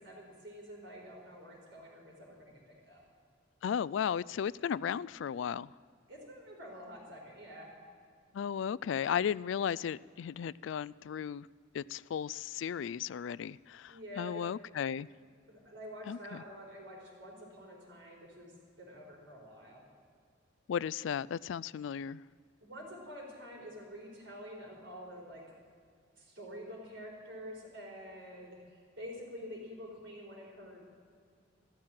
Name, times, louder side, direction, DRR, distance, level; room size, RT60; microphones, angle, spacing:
voice 1, 0.0-3.0 6.1-7.7 13.9-14.5 15.5-19.8 22.6-25.4 26.2-30.8, equal, 70° right, 4.8 m, -48 dB
voice 2, 3.6-5.7 8.3-11.5 11.7-15.1 16.1-16.4 20.7-22.2, left 8 dB, 75° left, 0.3 m, -35 dB
14.0 x 13.0 x 7.6 m
head